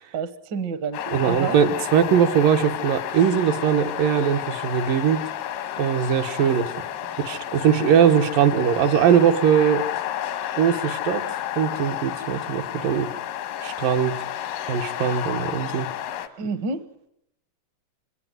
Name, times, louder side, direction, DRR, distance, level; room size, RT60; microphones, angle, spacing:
voice 1, 0.1-1.6 16.4-16.8, right 5 dB, 65° right, 12 dB, 1.1 m, -29 dB
sound 1, 0.9-16.3, left 11 dB, 85° left, 2.8 m, -31 dB
voice 2, 1.1-5.2 5.8-6.7 7.2-9.9 10.6-11.3 11.6-13.1 13.6-14.2 14.7-15.9, right 8 dB, 85° right, 6 dB, 2.9 m, -20 dB
25.5 x 17.5 x 9.4 m, 0.79 s
omnidirectional pair, 3.8 m